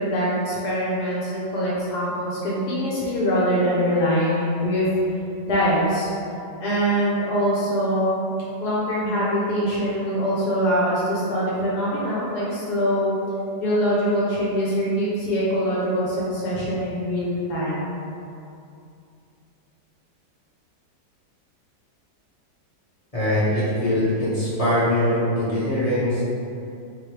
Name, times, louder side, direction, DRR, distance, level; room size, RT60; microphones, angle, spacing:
voice 1, 0.0-4.9 5.5-6.1 6.6-8.1 8.6-13.1 13.6-17.9, equal, 70° left, -7 dB, 1.2 m, -23 dB
voice 2, 23.1-26.2, left 1 dB, 25° left, -12 dB, 0.8 m, -22 dB
4.3 x 2.4 x 3.2 m, 2.6 s
omnidirectional pair, 1.9 m